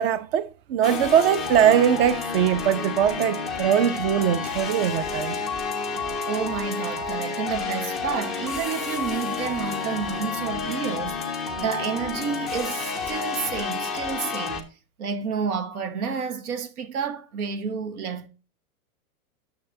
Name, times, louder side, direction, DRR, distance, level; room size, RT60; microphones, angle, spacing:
voice 1, 0.0-5.3, right 9 dB, 40° right, 0.7 m, -21 dB
sound 1, 0.8-14.6, left 5 dB, ahead, 0.3 m, -30 dB
voice 2, 6.3-14.7 15.0-18.3, right 6 dB, 80° right, 1.4 m, -30 dB
9.3 x 6.7 x 2.7 m
supercardioid pair, 150°, 43 cm